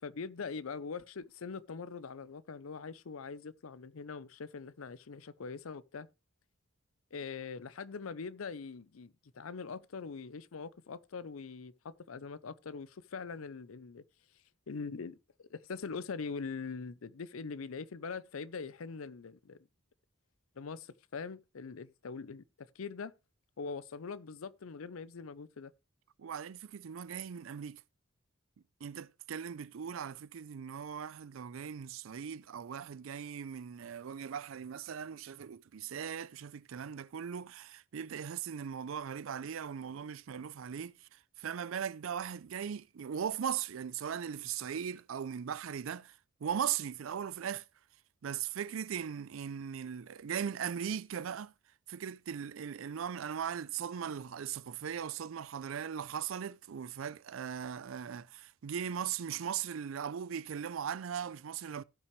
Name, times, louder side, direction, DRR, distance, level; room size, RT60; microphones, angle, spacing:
voice 1, 0.0-6.1 7.1-14.0 14.7-15.2 15.5-19.6 20.6-22.4 22.7-23.1 23.6-25.7, left 5 dB, 85° left, 0.6 m, -42 dB
voice 2, 26.2-27.8 28.8-46.2 46.4-47.7 48.2-51.5 51.9-61.8, right 8 dB, 70° right, 0.4 m, -39 dB
16.5 x 5.9 x 3.1 m
head